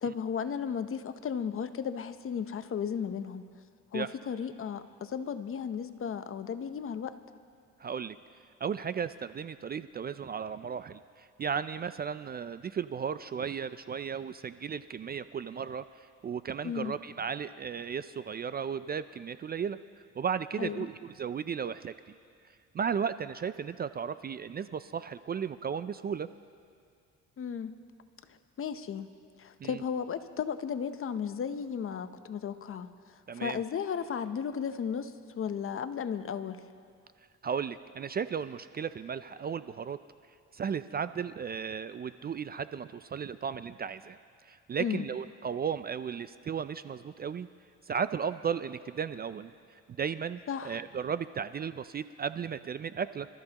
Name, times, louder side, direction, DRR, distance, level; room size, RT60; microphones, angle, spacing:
voice 1, 0.0-3.5 3.9-7.2 16.6-16.9 20.6-20.9 27.4-27.8 28.3-29.1 29.4-32.9 33.3-36.6 44.8-45.1 50.5-50.8, left 7 dB, 45° left, 11 dB, 0.8 m, -35 dB
voice 2, 7.8-8.2 8.6-15.9 16.2-19.8 20.2-21.9 22.7-26.3 29.6-29.8 33.3-33.6 37.4-40.0 40.5-44.2 44.5-47.5 47.9-49.5 50.0-53.3, right 7 dB, 35° right, 13 dB, 0.4 m, -35 dB
25.5 x 13.5 x 2.9 m, 2.2 s
cardioid pair, 90°, 30 cm